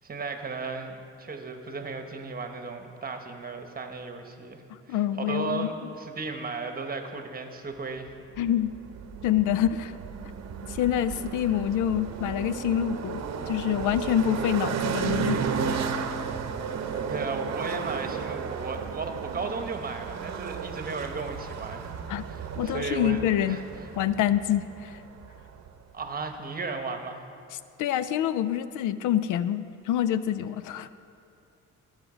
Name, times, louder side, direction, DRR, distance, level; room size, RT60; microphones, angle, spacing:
voice 1, 0.0-4.6 4.9-8.1 17.1-21.9 22.3-23.9 25.9-27.2, right 4 dB, 30° right, 5 dB, 1.2 m, -35 dB
voice 2, 4.9-5.7 8.4-8.7 9.2-9.9 10.7-13.2 13.5-16.0 22.1-22.2 22.6-23.6 24.0-25.0 27.8-30.9, left 11 dB, 85° left, 14 dB, 0.5 m, -26 dB
sound 1, 8.3-25.8, right 6 dB, 60° right, 0.8 m, -34 dB
16.0 x 6.5 x 5.0 m, 2.5 s
cardioid pair, 90°, 30 cm